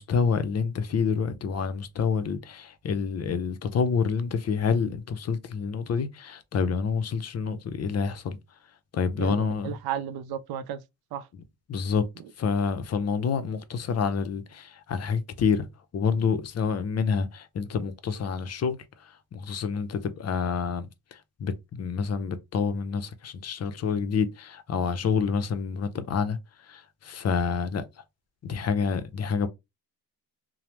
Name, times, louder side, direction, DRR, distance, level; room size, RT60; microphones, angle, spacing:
voice 1, 0.0-8.4 8.9-9.7 11.7-12.1 12.4-15.7 15.9-18.8 19.3-20.9 21.4-26.4 26.7-27.8 28.4-29.5, left 5 dB, 45° left, 0.5 m, -28 dB
voice 2, 9.2-10.8 11.1-11.3, right 9 dB, 80° right, 0.5 m, -33 dB
3.1 x 2.0 x 2.9 m
cardioid pair, 100°, 37 cm